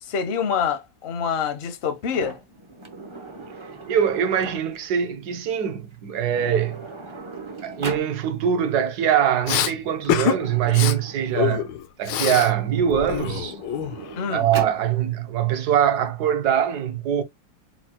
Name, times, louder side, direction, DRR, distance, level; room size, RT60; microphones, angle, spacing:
voice 1, 0.0-2.4 14.2-14.5, left 7 dB, 55° left, 0.7 m, -26 dB
Sliding door, 2.1-4.9 5.9-6.0 6.3-8.1 9.2-11.8 12.5-14.8, right 3 dB, 40° right, 0.4 m, -39 dB
voice 2, 3.9-6.8 7.6-11.7 12.0-13.6 14.3-17.2, right 9 dB, 70° right, 1.2 m, -23 dB
Respiratory sounds, 9.5-9.7 10.1-10.4 10.7-10.9 11.3-12.5 12.8-14.2, left 10 dB, 85° left, 1.3 m, -25 dB
4.5 x 2.3 x 4.3 m
omnidirectional pair, 1.9 m